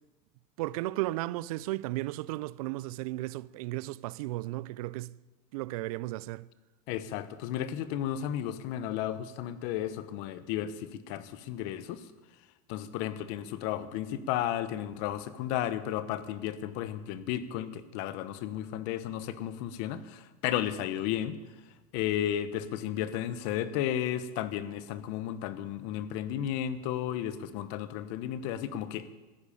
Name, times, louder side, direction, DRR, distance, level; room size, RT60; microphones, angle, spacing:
voice 1, 0.6-5.2 5.5-6.5, right 18 dB, 90° right, 0.5 m, -34 dB
voice 2, 6.9-12.1 12.7-21.4 21.9-29.1, left 11 dB, 60° left, 1.1 m, -33 dB
14.0 x 10.5 x 8.6 m
cardioid pair, 160°, 18 cm